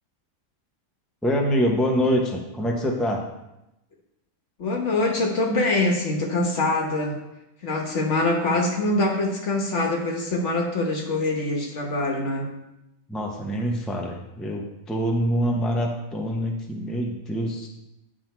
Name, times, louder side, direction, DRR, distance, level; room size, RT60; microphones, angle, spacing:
voice 1, 1.2-3.2 13.1-17.7, equal, ahead, 0 dB, 0.6 m, -25 dB
voice 2, 4.6-7.2 7.6-12.5, left 2 dB, 60° left, 1 dB, 1.4 m, -24 dB
9.4 x 4.0 x 4.4 m, 0.90 s
omnidirectional pair, 1.4 m